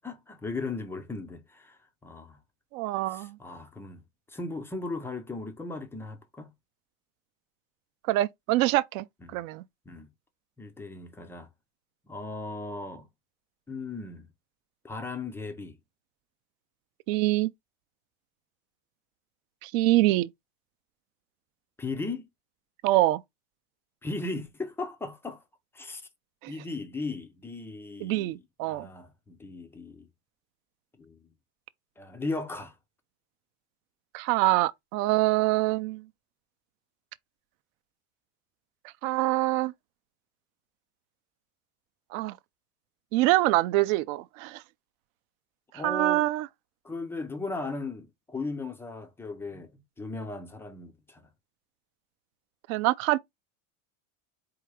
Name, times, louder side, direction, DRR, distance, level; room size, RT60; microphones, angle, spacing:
voice 1, 0.0-2.4 3.1-4.0 4.3-6.5 9.2-9.4 9.9-10.1 10.6-11.5 12.1-13.1 13.7-14.3 14.8-15.8 21.8-22.3 24.0-25.4 25.7-26.0 26.5-30.1 31.0-31.3 32.0-32.8 45.7-46.3 46.8-51.3, left 3 dB, 5° left, 0.3 m, -37 dB
voice 2, 2.7-3.4 8.1-9.0 9.3-9.6 17.1-17.5 19.6-20.3 22.8-23.2 26.4-26.5 28.0-28.9 34.1-36.0 39.0-39.7 42.1-42.4 43.1-44.6 45.8-46.5 52.7-53.2, right 17 dB, 65° right, 0.5 m, -25 dB
4.7 x 2.3 x 4.7 m
supercardioid pair, 135°, 46 cm